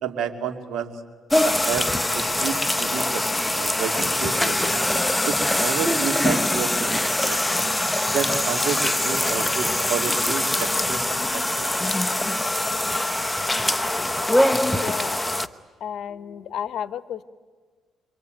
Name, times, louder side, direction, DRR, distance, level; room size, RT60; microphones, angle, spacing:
voice 1, 0.0-1.0 1.4-1.9 2.1-3.2 3.5-4.9 5.2-7.7 8.1-11.0 11.3-11.7, right 7 dB, 75° right, 5 dB, 2.7 m, -30 dB
sound 1, 1.3-15.5, left 1 dB, 10° left, 0.9 m, -23 dB
voice 2, 14.7-15.2 15.8-17.2, left 9 dB, 70° left, 16 dB, 1.0 m, -32 dB
26.0 x 24.0 x 9.2 m, 1.5 s
cardioid pair, 90°, 0 cm